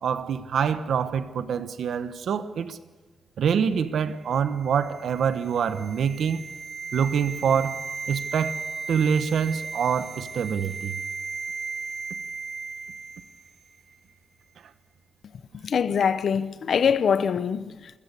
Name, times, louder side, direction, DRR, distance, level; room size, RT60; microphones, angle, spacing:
voice 1, 0.0-2.8 3.4-6.4 6.9-7.8 8.1-8.6 8.9-11.0, right 7 dB, 75° right, 1.2 m, -25 dB
sound 1, 4.3-13.5 13.8-13.9, right 4 dB, 35° right, 1.3 m, -36 dB
voice 2, 15.6-17.9, left 7 dB, 60° left, 0.7 m, -23 dB
29.0 x 16.0 x 6.9 m
wide cardioid pair, 165°, 0 cm